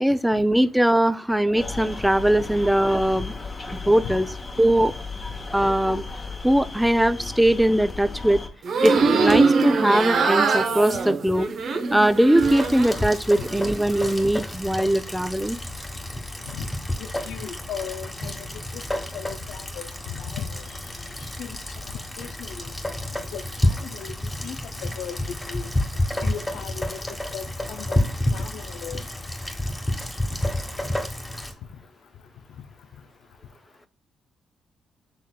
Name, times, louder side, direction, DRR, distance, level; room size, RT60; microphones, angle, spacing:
voice 1, 0.0-3.3 3.9-4.3 4.6-4.9 5.5-6.0 6.4-8.4 8.8-11.5 11.9-15.6, right 1 dB, 5° right, 0.5 m, -20 dB
sound 1, 1.5-8.5, left 3 dB, 35° left, 1.0 m, -35 dB
sound 2, 8.6-13.1 13.4-14.2, right 4 dB, 65° right, 0.7 m, -22 dB
Rain, 12.4-31.5, left 1 dB, 20° left, 1.2 m, -30 dB
voice 2, 17.0-18.5 18.7-18.8 19.1-20.8 21.4-21.6 22.2-22.6 23.3-24.2 24.4-24.6 24.8-25.7 26.2-27.0 27.3-28.1 28.3-29.0, left 8 dB, 75° left, 0.4 m, -36 dB
6.6 x 3.5 x 2.3 m
hypercardioid pair, 50°, 0 cm